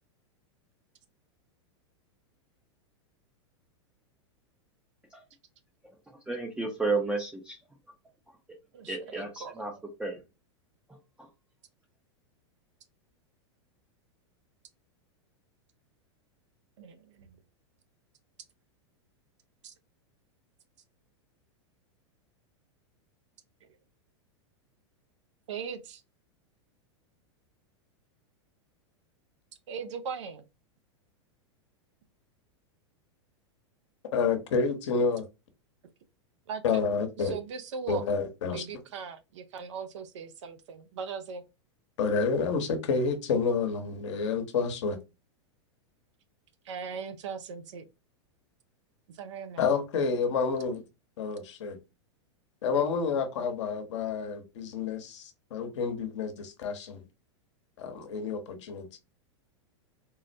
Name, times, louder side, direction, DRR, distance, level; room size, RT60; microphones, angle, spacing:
voice 1, 6.3-7.6 8.9-9.7 10.0-10.2 11.2-11.3, right 3 dB, 5° right, 0.5 m, -32 dB
voice 2, 8.7-9.7 16.8-17.4 19.6-19.7 23.6-23.7 25.5-26.0 29.7-30.4 36.5-36.6 37.2-38.0 38.5-41.4 46.6-47.9 49.1-49.7, right 6 dB, 75° right, 0.6 m, -39 dB
voice 3, 34.1-35.2 36.6-37.3 37.9-38.6 42.0-45.0 49.6-50.8 51.2-51.8 52.6-57.0 57.8-59.0, left 5 dB, 70° left, 0.9 m, -29 dB
3.7 x 2.1 x 2.6 m
hypercardioid pair, 110°, 15 cm